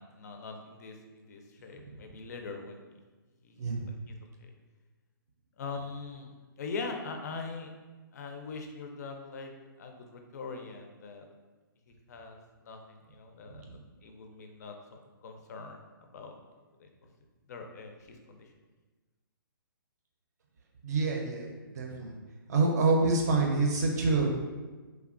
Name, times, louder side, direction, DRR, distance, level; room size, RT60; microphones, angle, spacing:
voice 1, 0.0-2.8 3.4-3.6 3.9-4.5 5.6-7.7 8.1-9.5 9.8-11.3 11.9-13.6 14.0-14.7 15.2-15.8 16.1-16.3 16.8-16.9 17.5-18.5, left 4 dB, 45° left, 4 dB, 0.4 m, -42 dB
voice 2, 20.8-21.5 21.7-22.1 22.5-24.3, right 3 dB, 45° right, 0 dB, 0.5 m, -26 dB
3.2 x 2.2 x 2.4 m, 1.3 s
hypercardioid pair, 160°, 12 cm